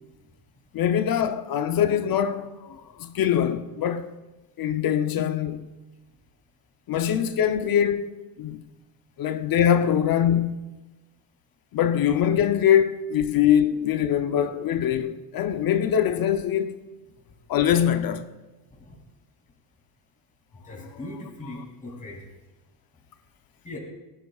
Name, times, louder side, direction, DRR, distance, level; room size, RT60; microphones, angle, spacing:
voice 1, 0.7-4.1 4.6-5.7 6.9-8.6 9.2-10.6 11.7-16.8 17.5-18.3, left 9 dB, 45° left, 0.7 m, -23 dB
voice 2, 20.6-22.3 23.6-23.8, left 1 dB, 15° left, 2.7 m, -39 dB
17.0 x 11.0 x 2.4 m
cardioid pair, 110°, 47 cm